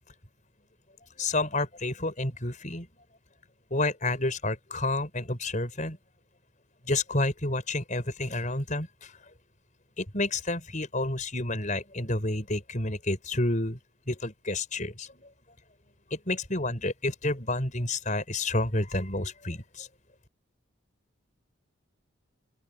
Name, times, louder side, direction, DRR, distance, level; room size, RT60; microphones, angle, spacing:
voice 1, 1.2-2.9 3.7-6.0 6.9-9.1 10.0-13.8 14.1-15.3 16.1-19.9, left 2 dB, 35° left, 5.8 m, -30 dB
open air
head